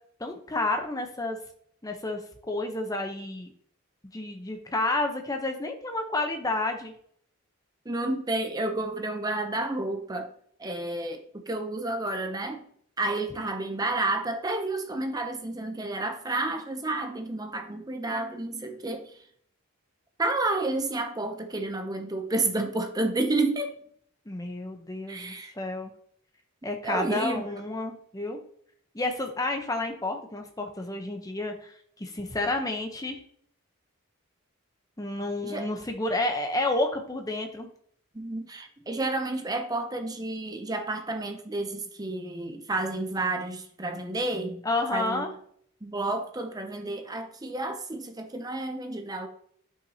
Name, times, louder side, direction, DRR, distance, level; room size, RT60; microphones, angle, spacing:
voice 1, 0.2-1.4 1.8-2.2 2.5-3.5 4.1-6.9 24.3-25.9 26.6-28.4 28.9-33.2 35.0-37.7 44.6-45.3, left 2 dB, 15° left, 4 dB, 0.8 m, -30 dB
voice 2, 7.9-10.3 10.6-12.6 13.0-19.2 20.2-23.7 25.1-25.5 26.8-27.6 35.4-35.7 38.1-44.6 44.9-45.3 45.8-49.3, right 2 dB, 15° right, 6 dB, 0.6 m, -30 dB
9.2 x 5.7 x 2.8 m, 0.64 s
head